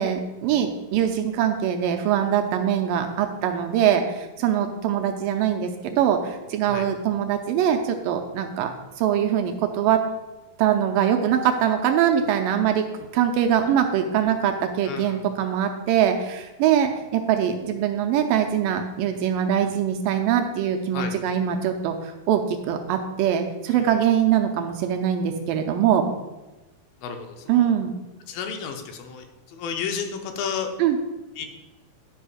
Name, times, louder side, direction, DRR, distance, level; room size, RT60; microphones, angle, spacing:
voice 1, 0.0-10.0 10.6-12.9 13.1-26.1 27.5-27.9 30.8-31.0, right 9 dB, 80° right, 5 dB, 2.1 m, -23 dB
voice 2, 14.9-15.2 20.9-21.2 23.7-24.0 27.0-27.7 28.3-30.7 31.4-31.5, left 6 dB, 75° left, 4 dB, 2.6 m, -32 dB
11.0 x 5.3 x 4.9 m, 1.1 s
omnidirectional pair, 4.3 m